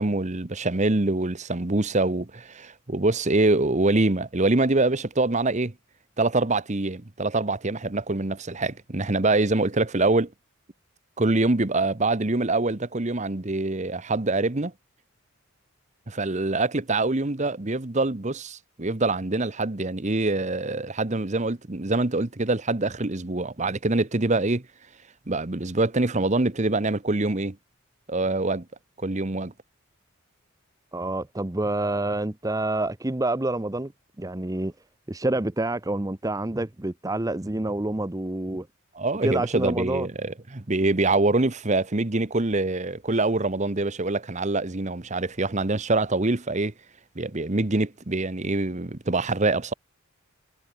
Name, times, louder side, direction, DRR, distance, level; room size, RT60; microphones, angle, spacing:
voice 1, 0.0-5.7 6.2-10.3 11.2-14.7 16.1-24.7 25.3-27.6 28.1-28.7 29.0-29.5 38.9-46.7 47.1-49.7, right 2 dB, 35° right, 1.1 m, -25 dB
voice 2, 30.9-33.9 34.2-34.7 35.1-38.7 39.2-40.1, right 2 dB, 15° right, 0.7 m, -27 dB
head